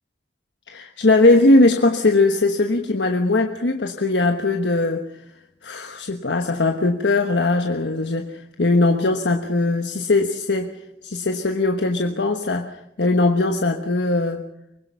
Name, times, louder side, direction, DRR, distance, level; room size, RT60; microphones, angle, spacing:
voice 1, 0.7-5.1 5.6-10.7 11.0-14.4, left 2 dB, 85° left, 5 dB, 1.2 m, -20 dB
24.0 x 20.5 x 5.6 m, 0.79 s
head